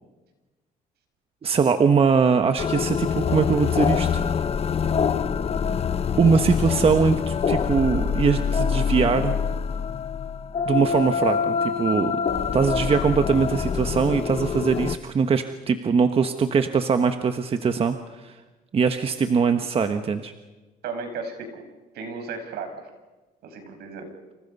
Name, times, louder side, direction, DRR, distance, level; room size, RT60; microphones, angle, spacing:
voice 1, 1.4-4.2 6.2-9.4 10.6-12.2 12.5-18.4 18.7-20.3, right 5 dB, 35° right, 7 dB, 1.3 m, -22 dB
sound 1, 2.6-15.0, left 6 dB, 35° left, 1.0 m, -25 dB
voice 2, 20.8-21.6 21.9-22.9 23.4-24.1, right 4 dB, 70° right, 6 dB, 6.0 m, -34 dB
29.5 x 27.5 x 5.5 m, 1.2 s
cardioid pair, 110°, 17 cm